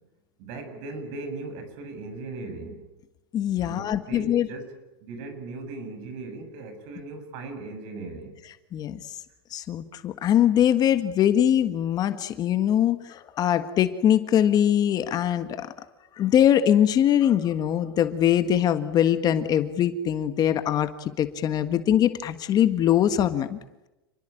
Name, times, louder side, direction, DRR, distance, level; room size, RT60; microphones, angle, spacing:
voice 1, 0.4-2.8 3.6-4.7 5.0-8.4, right 3 dB, 50° right, 8 dB, 7.6 m, -38 dB
voice 2, 3.3-4.5 8.7-9.0 9.5-15.7 16.2-23.6, left 10 dB, 30° left, 10 dB, 1.6 m, -22 dB
28.5 x 21.0 x 9.1 m, 0.99 s
hypercardioid pair, 125°, 12 cm